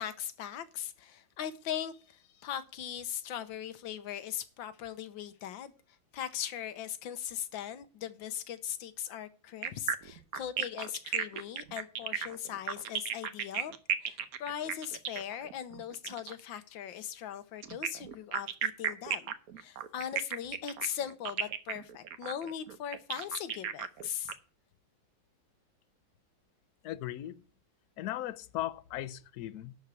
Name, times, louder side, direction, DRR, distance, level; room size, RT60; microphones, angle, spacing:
voice 1, 0.0-5.7 6.1-13.7 14.0-24.3, left 9 dB, 85° left, 1.6 m, -39 dB
sound 1, 9.6-16.4 17.6-24.3, right 9 dB, 60° right, 1.2 m, -34 dB
voice 2, 26.8-27.4 28.0-29.7, left 13 dB, 65° left, 1.1 m, -37 dB
11.5 x 4.5 x 8.1 m
omnidirectional pair, 2.0 m